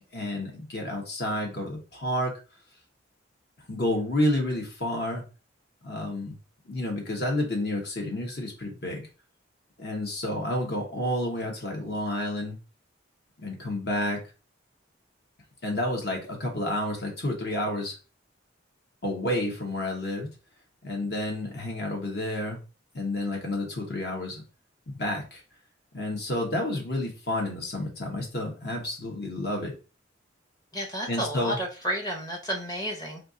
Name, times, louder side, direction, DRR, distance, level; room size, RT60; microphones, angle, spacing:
voice 1, 0.1-2.3 3.7-5.2 5.8-6.4 6.7-9.1 9.8-12.6 13.4-14.2 15.6-17.9 19.0-20.3 20.8-22.6 22.9-24.4 24.9-25.4 25.9-29.7 31.1-31.6, left 1 dB, 55° left, 1 dB, 1.0 m, -30 dB
voice 2, 30.7-33.2, right 1 dB, 20° left, 1 dB, 0.7 m, -31 dB
4.3 x 2.4 x 2.5 m, 0.32 s
head